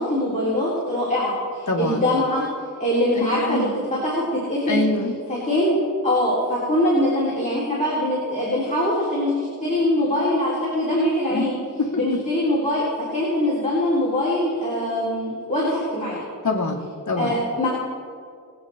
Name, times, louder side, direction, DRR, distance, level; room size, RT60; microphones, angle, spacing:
voice 1, 0.0-2.4 2.8-4.8 5.3-5.7 6.0-11.6 11.9-12.8 13.1-16.2 17.2-17.7, left 1 dB, 20° left, -8 dB, 3.7 m, -23 dB
voice 2, 1.7-2.1 3.2-3.7 4.7-5.1 11.3-11.5 11.8-12.0 16.4-17.4, left 2 dB, 55° left, 0 dB, 1.6 m, -25 dB
22.5 x 8.3 x 4.3 m, 2.1 s
wide cardioid pair, 80°, 35 cm